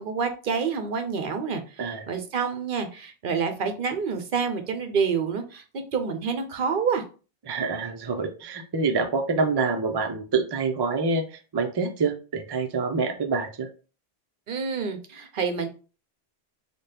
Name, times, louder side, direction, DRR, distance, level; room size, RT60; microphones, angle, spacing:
voice 1, 0.0-7.0 14.5-15.7, right 5 dB, 60° right, 7 dB, 0.8 m, -28 dB
voice 2, 1.8-2.1 7.5-13.7, right 4 dB, 40° right, 5 dB, 0.3 m, -26 dB
4.0 x 2.2 x 3.3 m, 0.35 s
omnidirectional pair, 1.0 m